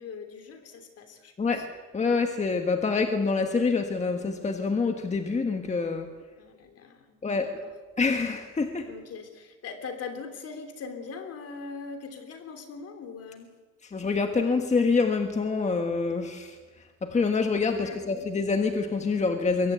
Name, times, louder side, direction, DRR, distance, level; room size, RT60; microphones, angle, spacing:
voice 1, 0.0-1.6 2.8-2.9 6.4-7.7 8.9-13.5 17.7-18.1, left 5 dB, 55° left, 6 dB, 3.3 m, -41 dB
voice 2, 1.9-6.1 7.2-7.5 8.0-8.9 13.9-16.6 17.0-19.7, left 4 dB, 25° left, 5 dB, 1.5 m, -26 dB
22.5 x 17.0 x 8.1 m, 1.4 s
cardioid pair, 130°, 30 cm